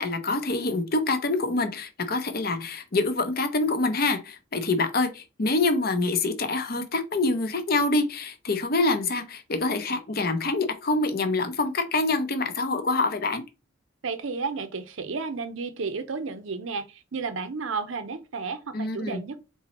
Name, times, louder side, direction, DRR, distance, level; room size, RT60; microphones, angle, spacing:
voice 1, 0.0-13.4 18.7-19.2, left 3 dB, 45° left, 0.6 m, -26 dB
voice 2, 14.0-19.4, right 4 dB, 70° right, 0.6 m, -32 dB
4.1 x 3.6 x 3.0 m
head